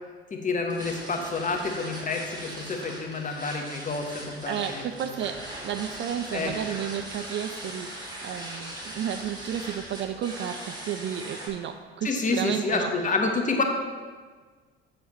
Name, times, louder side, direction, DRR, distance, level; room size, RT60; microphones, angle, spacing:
voice 1, 0.3-5.1 6.3-6.5 12.0-13.6, left 3 dB, 25° left, 3 dB, 1.1 m, -28 dB
sound 1, 0.7-11.5, right 1 dB, 15° right, 2.1 m, -40 dB
voice 2, 4.5-13.1, right 9 dB, 40° right, 8 dB, 0.4 m, -32 dB
7.5 x 6.8 x 3.0 m, 1.5 s
figure-of-eight pair, 60°, 31 cm